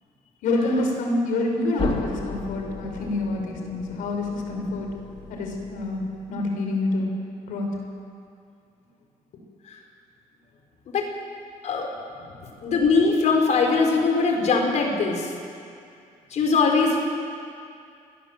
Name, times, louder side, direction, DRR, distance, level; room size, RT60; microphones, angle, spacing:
voice 1, 0.4-4.9 5.3-6.0 6.3-7.1 7.4-7.7 12.4-12.5, left 2 dB, 85° left, 2 dB, 5.6 m, -26 dB
sound 1, 1.8-6.5, left 5 dB, 40° left, 2.9 m, -36 dB
voice 2, 12.6-15.3 16.3-17.0, left 4 dB, 60° left, 1 dB, 5.2 m, -21 dB
27.0 x 21.5 x 7.7 m, 2.4 s
cardioid pair, 130°, 14 cm